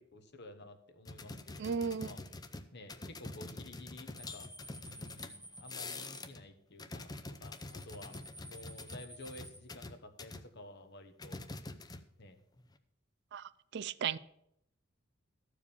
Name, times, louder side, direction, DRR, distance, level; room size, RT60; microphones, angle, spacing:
voice 1, 0.1-2.2 2.7-4.5 4.8-7.1 7.4-8.1 8.5-11.4 12.2-12.4, left 1 dB, 55° left, 1.1 m, -52 dB
sound 1, 1.1-6.5 6.7-10.4 11.2-12.3 12.6-12.8, left 2 dB, 20° left, 0.5 m, -46 dB
voice 2, 1.6-2.1 13.3-14.2, right 7 dB, 55° right, 0.4 m, -36 dB
sound 2, 4.2-6.2 7.5-9.6, right 1 dB, 5° right, 1.2 m, -52 dB
13.5 x 4.9 x 7.0 m
head